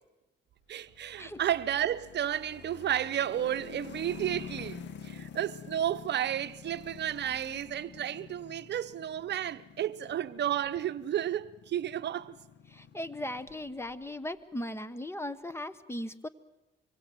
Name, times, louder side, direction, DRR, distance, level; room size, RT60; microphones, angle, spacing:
voice 1, 0.7-12.4, right 11 dB, 60° right, 0.8 m, -32 dB
sound 1, 0.9-14.0, left 6 dB, 65° left, 1.7 m, -48 dB
voice 2, 12.7-16.3, left 1 dB, 10° left, 1.1 m, -38 dB
25.5 x 23.5 x 7.8 m
cardioid pair, 90°, 20 cm